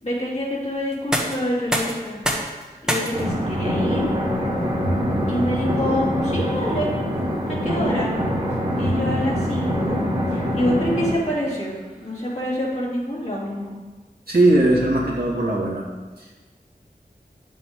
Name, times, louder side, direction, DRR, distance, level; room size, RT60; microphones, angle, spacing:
voice 1, 0.0-2.2 2.8-4.1 5.3-6.9 7.5-8.2 8.8-10.0 10.3-13.7, equal, 45° left, -6 dB, 3.1 m, -26 dB
sound 1, 0.9-12.7, equal, 5° right, 1.5 m, -34 dB
sound 2, 3.1-11.1, equal, 35° right, 1.8 m, -24 dB
voice 2, 14.3-15.8 16.2-16.4, right 2 dB, 70° right, -5 dB, 2.2 m, -19 dB
9.7 x 7.6 x 3.7 m, 1.3 s
wide cardioid pair, 50°, 16 cm